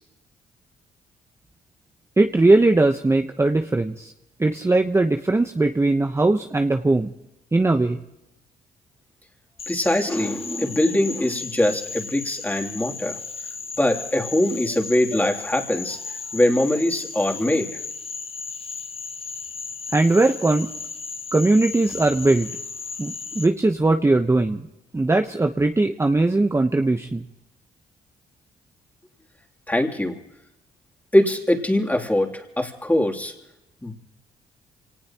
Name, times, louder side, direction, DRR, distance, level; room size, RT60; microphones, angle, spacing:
voice 1, 2.2-4.1 4.4-7.1 7.5-8.0 19.9-20.7 21.3-22.5 23.0-24.7 24.9-27.3, right 2 dB, 15° right, 5 dB, 1.0 m, -19 dB
Frog, 9.6-23.4, left 5 dB, 40° left, 1.2 m, -35 dB
voice 2, 9.7-13.2 13.8-17.7 29.7-30.2 31.1-33.3 33.8-33.9, left 1 dB, 10° left, 1 dB, 3.1 m, -22 dB
25.5 x 18.5 x 3.0 m, 0.86 s
supercardioid pair, 65°, 16 cm